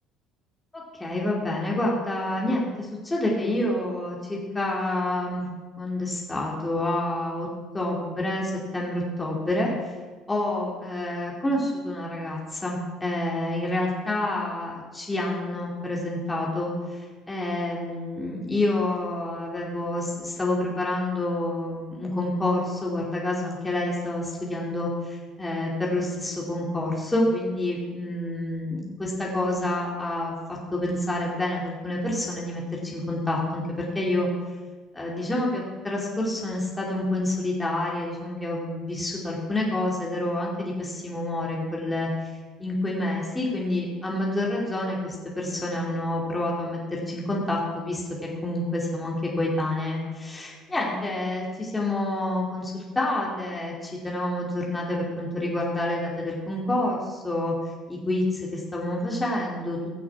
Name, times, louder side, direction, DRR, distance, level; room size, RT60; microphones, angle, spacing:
voice 1, 0.7-5.5 5.8-7.5 7.7-9.7 10.3-34.3 34.9-42.3 42.6-48.1 48.4-57.5 57.9-59.8, left 1 dB, 15° left, -3 dB, 2.6 m, -28 dB
16.5 x 6.2 x 4.7 m, 1.4 s
hypercardioid pair, 70°, 0 cm